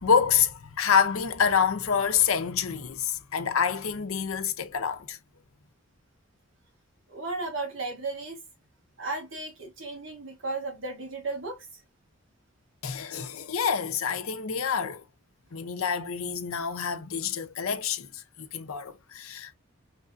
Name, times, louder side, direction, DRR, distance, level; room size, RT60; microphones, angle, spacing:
voice 1, 0.0-5.2 12.8-15.0 15.5-19.5, left 7 dB, 80° left, 0.7 m, -27 dB
voice 2, 7.1-8.4 9.0-11.8, right 3 dB, 60° right, 1.0 m, -35 dB
5.9 x 2.6 x 2.4 m
head